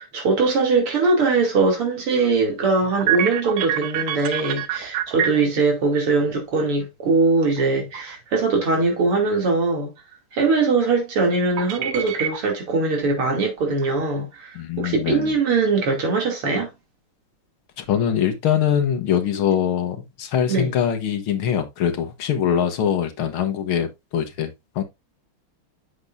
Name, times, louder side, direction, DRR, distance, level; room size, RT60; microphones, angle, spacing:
voice 1, 0.0-9.9 10.3-16.7 20.5-20.8, right 3 dB, 85° right, 3.5 m, -21 dB
sound 1, 2.8-5.6 7.6-7.7 7.9-8.4 11.6-12.7 13.1-13.2 13.8-14.3, right 11 dB, 65° right, 1.3 m, -26 dB
voice 2, 14.6-15.2 17.9-23.9 24.1-24.5 24.8-24.9, left 9 dB, 75° left, 2.0 m, -22 dB
8.1 x 7.1 x 2.5 m
omnidirectional pair, 2.4 m